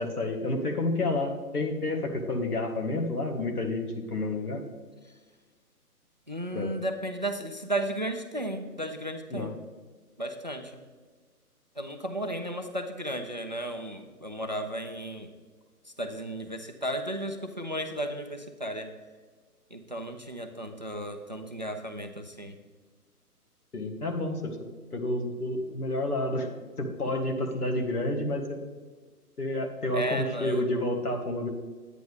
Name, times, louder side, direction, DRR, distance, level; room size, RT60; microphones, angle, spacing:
voice 1, 0.0-4.6 6.5-6.7 9.3-9.5 23.7-24.6 24.9-26.5 26.8-28.6 29.4-31.5, left 2 dB, 70° left, 3 dB, 1.9 m, -30 dB
voice 2, 6.3-9.6 10.2-10.8 11.8-15.3 16.0-18.9 19.7-22.6 29.9-30.6, right 1 dB, 30° right, 6 dB, 0.4 m, -34 dB
10.5 x 9.2 x 3.5 m, 1.4 s
figure-of-eight pair, 140°, 47 cm